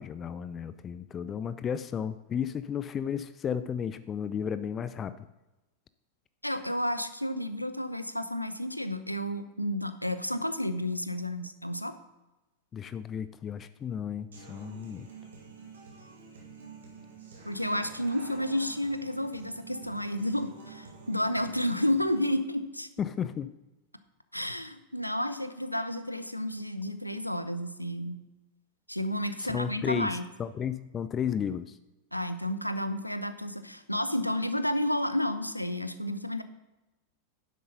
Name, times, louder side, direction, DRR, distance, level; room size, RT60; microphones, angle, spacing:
voice 1, 0.0-5.1 12.7-15.1 23.0-23.5 29.4-31.8, left 8 dB, 25° left, 14 dB, 0.4 m, -33 dB
voice 2, 6.4-11.9 17.4-22.9 24.3-28.2 28.9-30.3 32.1-36.4, left 1 dB, 90° left, 11 dB, 0.6 m, -31 dB
Human voice / Acoustic guitar, 14.3-22.3, right 5 dB, 65° right, 2.2 m, -48 dB
10.0 x 7.8 x 3.9 m, 1.0 s
figure-of-eight pair, 90°, 0 cm